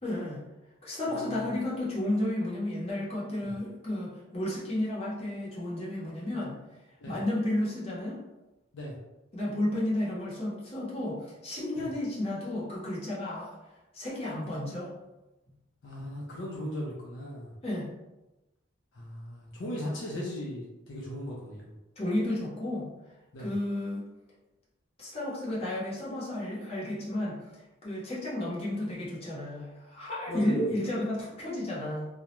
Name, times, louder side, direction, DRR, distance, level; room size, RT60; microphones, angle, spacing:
voice 1, 0.0-0.4 0.8-6.6 7.1-8.2 9.3-13.5 13.9-14.9 17.6-17.9 22.0-22.9 23.4-24.0 25.0-27.4 27.8-32.1, left 1 dB, 30° left, -7 dB, 0.8 m, -32 dB
voice 2, 1.1-1.4 3.4-3.5 7.0-7.2 8.7-9.0 11.8-11.9 15.8-17.5 18.9-21.7 23.3-23.5 30.3-30.7, left 1 dB, 65° left, -3 dB, 0.5 m, -38 dB
2.3 x 2.0 x 2.9 m, 0.99 s
head